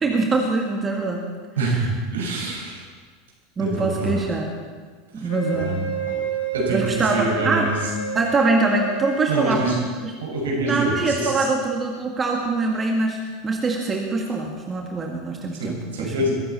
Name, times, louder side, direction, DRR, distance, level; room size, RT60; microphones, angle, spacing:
voice 1, 0.0-1.2 1.6-1.8 3.6-4.5 5.1-5.8 6.7-7.8 8.2-9.7 10.0-10.1 10.6-13.2 13.4-16.2, right 3 dB, 20° right, 1 dB, 1.8 m, -23 dB
voice 2, 1.6-2.8 3.6-4.2 5.1-6.2 6.5-7.7 9.3-9.8 10.2-11.5 15.5-16.3, right 2 dB, 70° right, -2 dB, 6.1 m, -26 dB
Wind instrument woodwind instrument, 5.3-9.7, right 5 dB, 80° left, 4.5 m, -30 dB
22.5 x 14.5 x 4.3 m, 1.5 s
figure-of-eight pair, 80°, 0 cm